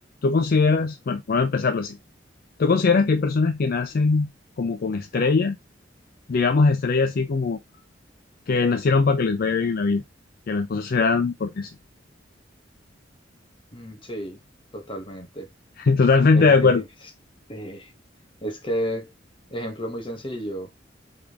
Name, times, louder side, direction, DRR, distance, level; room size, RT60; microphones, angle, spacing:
voice 1, 0.2-2.0 2.6-4.3 4.6-5.6 6.3-7.6 8.5-10.0 10.5-11.7 15.8-16.8, left 4 dB, 50° left, 0.4 m, -21 dB
voice 2, 13.7-14.4 14.7-15.5 16.3-16.9 17.5-17.9 18.4-19.1 19.5-20.7, equal, 30° left, 1.1 m, -32 dB
3.6 x 3.4 x 3.5 m
head